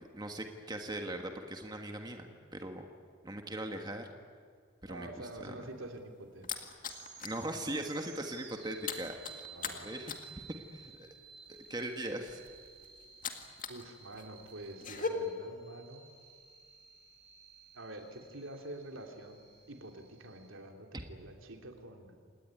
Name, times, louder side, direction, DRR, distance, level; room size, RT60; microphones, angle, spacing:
voice 1, 0.0-2.8 3.2-4.1 4.8-5.5 7.2-9.4 9.8-10.1 10.7-11.1 11.7-12.4 20.9-21.0, right 1 dB, 20° right, 4 dB, 1.7 m, -40 dB
voice 2, 4.9-6.6 9.5-10.2 13.7-16.1 17.7-22.2, right 1 dB, 75° right, 3 dB, 3.2 m, -47 dB
sound 1, 5.6-7.4 7.8-8.0 8.3-13.8 14.1-15.1, left 6 dB, 40° left, 2.1 m, -41 dB
sound 2, 6.8-20.5, right 7 dB, 55° right, 5.1 m, -55 dB
27.0 x 19.5 x 9.7 m, 2.1 s
head